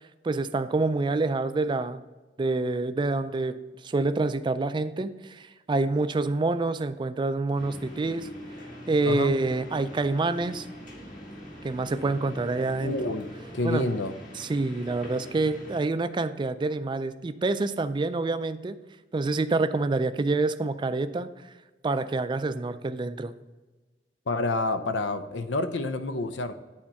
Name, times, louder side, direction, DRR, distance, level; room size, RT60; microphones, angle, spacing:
voice 1, 0.2-2.0 2.4-3.6 3.8-8.3 8.9-10.7 11.6-12.9 13.6-13.9 14.4-18.7 19.1-21.3 21.8-23.3, right 3 dB, 25° right, 12 dB, 0.3 m, -27 dB
sound 1, 7.6-15.8, equal, 50° left, 1.9 m, -43 dB
voice 2, 12.8-13.3 13.5-14.1 24.3-26.5, left 2 dB, 90° left, 10 dB, 0.6 m, -28 dB
8.6 x 4.4 x 5.7 m, 1.2 s
head